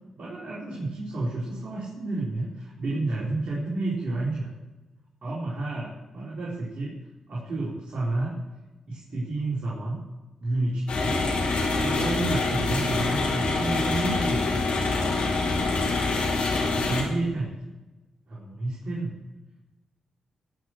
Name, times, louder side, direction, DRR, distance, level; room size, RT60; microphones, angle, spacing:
voice 1, 0.2-4.5 5.2-7.0 7.3-8.4 8.9-10.0 10.4-11.2 11.7-14.5 15.4-15.7 16.5-17.5 18.3-19.1, right 2 dB, 60° right, -6 dB, 4.2 m, -30 dB
sound 1, 10.9-17.0, left 3 dB, 75° left, 3.5 m, -25 dB
17.0 x 6.3 x 7.8 m, 1.1 s
supercardioid pair, 40°, 2 cm